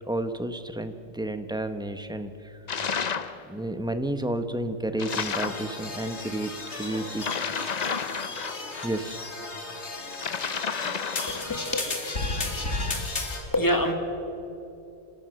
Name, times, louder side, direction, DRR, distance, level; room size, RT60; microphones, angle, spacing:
voice 1, 0.0-2.6 3.4-7.4 8.8-9.2, right 1 dB, 5° right, 9 dB, 0.7 m, -31 dB
sound 1, 2.7-3.4 5.0-5.7 7.2-8.9 10.1-11.5, left 6 dB, 40° left, 0.7 m, -31 dB
sound 2, 5.1-13.4, left 3 dB, 60° left, 2.2 m, -34 dB
voice 2, 10.5-11.9 13.5-13.9, left 1 dB, 15° left, 5 dB, 1.6 m, -28 dB
27.0 x 13.0 x 7.6 m, 2.9 s
omnidirectional pair, 1.3 m